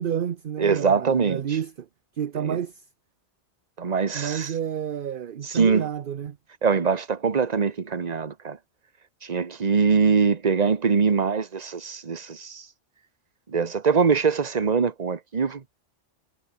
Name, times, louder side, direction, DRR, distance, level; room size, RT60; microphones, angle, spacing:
voice 1, 0.0-1.9 2.2-2.8 4.1-6.4, right 9 dB, 50° right, 0.8 m, -30 dB
voice 2, 0.6-1.4 2.4-2.6 3.8-4.5 5.4-5.9 6.6-8.6 9.2-12.6 13.5-15.6, right 5 dB, 35° right, 1.2 m, -23 dB
omnidirectional pair, 1.2 m